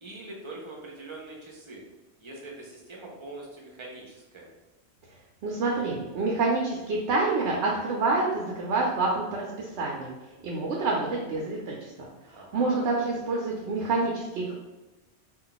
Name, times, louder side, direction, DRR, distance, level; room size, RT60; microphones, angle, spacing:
voice 1, 0.0-1.8 2.2-4.5 12.3-12.8, right 2 dB, 35° right, -2 dB, 0.6 m, -43 dB
voice 2, 5.4-10.1 10.4-14.5, right 3 dB, 85° right, -2 dB, 0.9 m, -27 dB
2.4 x 2.3 x 3.8 m, 1.1 s
omnidirectional pair, 1.1 m